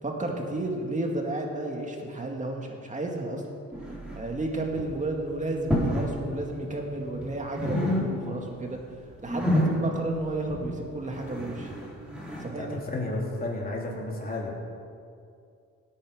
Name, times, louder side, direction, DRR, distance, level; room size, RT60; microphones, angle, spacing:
voice 1, 0.0-3.4 4.1-8.8 9.2-11.7 12.4-12.8, right 2 dB, 25° right, 1 dB, 2.3 m, -32 dB
sound 1, 3.7-4.4 4.7-5.0 5.6-6.2 6.4-7.3 7.5-8.5 8.8-12.5, left 1 dB, 5° right, 3.7 m, -29 dB
voice 2, 12.6-14.5, left 2 dB, 30° left, -2 dB, 3.1 m, -32 dB
17.0 x 8.6 x 5.2 m, 2.4 s
cardioid pair, 90°, 30 cm